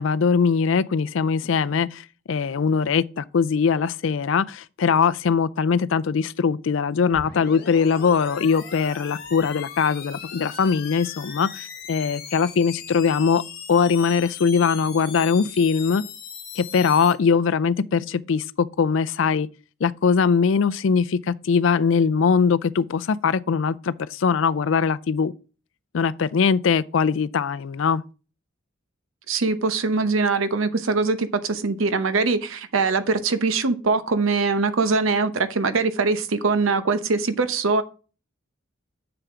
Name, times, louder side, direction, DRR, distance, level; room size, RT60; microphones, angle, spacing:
voice 1, 0.0-13.4 13.7-16.0 16.6-19.5 19.8-25.3 25.9-28.0, left 6 dB, 65° left, 0.4 m, -21 dB
sound 1, 7.1-17.1, left 7 dB, 50° left, 1.4 m, -38 dB
voice 2, 29.3-37.8, right 4 dB, 80° right, 0.8 m, -22 dB
7.0 x 6.8 x 3.7 m
head